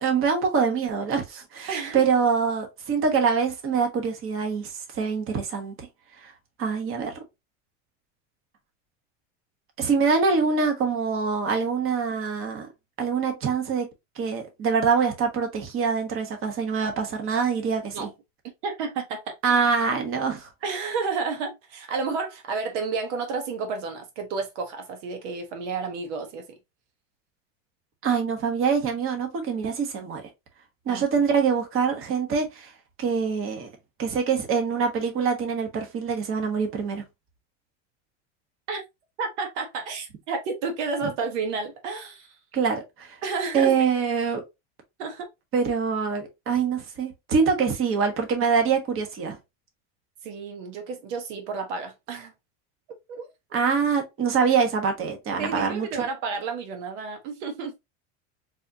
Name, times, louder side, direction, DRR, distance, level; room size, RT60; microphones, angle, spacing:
voice 1, 0.0-5.9 6.2-6.3 6.6-7.2 9.8-12.7 13.0-13.9 14.2-18.1 19.4-20.5 28.0-30.2 30.9-32.7 33.0-33.7 34.0-37.0 42.5-43.2 43.5-44.4 45.5-49.4 53.5-56.0, right 5 dB, 35° right, 1.2 m, -24 dB
voice 2, 1.7-2.0 17.9-18.1 18.6-19.4 20.6-26.5 30.9-31.1 38.7-38.8 39.2-42.4 43.2-43.7 45.0-45.3 50.2-52.3 53.1-53.3 55.4-57.8, right 4 dB, 80° right, 1.0 m, -31 dB
4.1 x 2.5 x 2.8 m
supercardioid pair, 125°, 36 cm